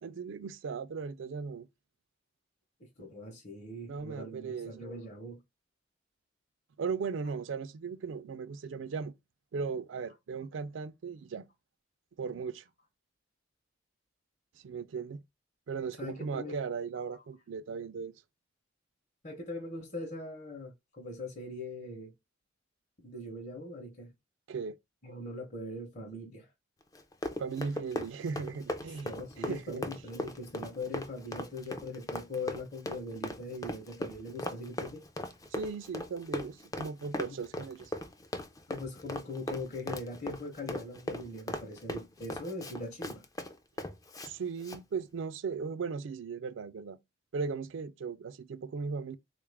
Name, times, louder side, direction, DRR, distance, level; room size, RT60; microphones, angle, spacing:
voice 1, 0.0-1.7 3.9-4.8 6.8-9.1 9.5-11.5 12.2-12.6 14.6-15.2 15.7-18.1 24.5-24.8 27.4-29.8 35.5-37.9 44.2-47.0 47.3-49.2, right 5 dB, 80° right, 0.4 m, -37 dB
voice 2, 3.0-5.4 16.0-16.6 19.2-22.1 23.0-24.1 25.0-26.5 29.0-35.0 37.3-37.4 38.7-43.2, left 2 dB, 40° left, 0.8 m, -41 dB
Run, 26.9-44.3 44.6-44.8, left 1 dB, 20° left, 0.3 m, -39 dB
3.5 x 2.4 x 3.3 m
head